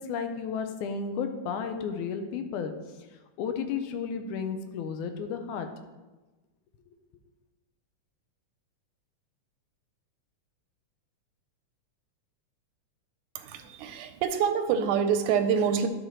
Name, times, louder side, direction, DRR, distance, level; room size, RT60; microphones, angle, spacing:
voice 1, 0.0-2.7 3.4-5.7, left 6 dB, 80° left, 7 dB, 2.0 m, -33 dB
voice 2, 13.4-15.9, right 7 dB, 85° right, 8 dB, 2.1 m, -26 dB
12.0 x 6.4 x 3.0 m, 1.2 s
omnidirectional pair, 3.6 m